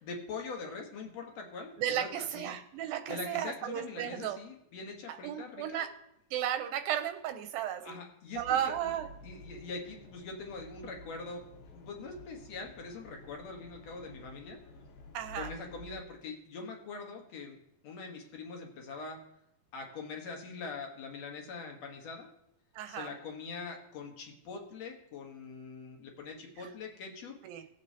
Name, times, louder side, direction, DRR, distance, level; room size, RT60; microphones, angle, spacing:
voice 1, 0.0-2.5 3.1-5.8 7.8-8.9 9.2-11.4 11.7-14.6 15.4-17.6 17.8-19.2 19.7-22.3 22.9-27.4, left 4 dB, 60° left, 1 dB, 2.0 m, -43 dB
voice 2, 1.8-4.4 5.2-5.9 6.3-8.0 8.4-9.1 15.1-15.5 22.8-23.1 27.4-27.6, right 10 dB, 85° right, 7 dB, 2.4 m, -34 dB
sound 1, 8.3-16.0, left 1 dB, 80° left, 3.0 m, -52 dB
19.5 x 7.5 x 2.8 m, 0.81 s
omnidirectional pair, 4.3 m